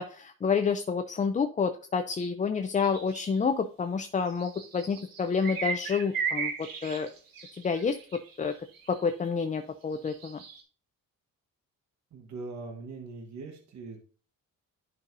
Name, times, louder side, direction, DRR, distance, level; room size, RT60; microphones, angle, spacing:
voice 1, 0.0-6.5 6.8-7.1 7.6-8.0 8.4-8.5 8.9-10.4, left 5 dB, 25° left, 8 dB, 0.4 m, -29 dB
sound 1, 2.8-3.4 4.3-9.2 9.9-10.6, right 6 dB, 85° right, 1.5 m, -36 dB
voice 2, 12.1-14.0, right 3 dB, 55° right, 2 dB, 1.3 m, -41 dB
11.0 x 5.5 x 2.6 m, 0.42 s
cardioid pair, 120°, 33 cm